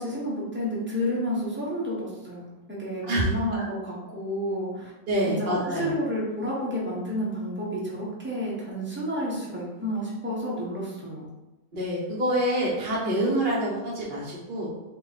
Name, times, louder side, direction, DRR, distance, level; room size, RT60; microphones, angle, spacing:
voice 1, 0.0-2.5 2.8-4.9 5.3-11.3, equal, 10° right, -6 dB, 0.7 m, -30 dB
voice 2, 5.1-5.9 11.7-14.7, right 1 dB, 40° right, -6 dB, 0.8 m, -26 dB
3.7 x 2.4 x 4.1 m, 1.0 s
omnidirectional pair, 1.7 m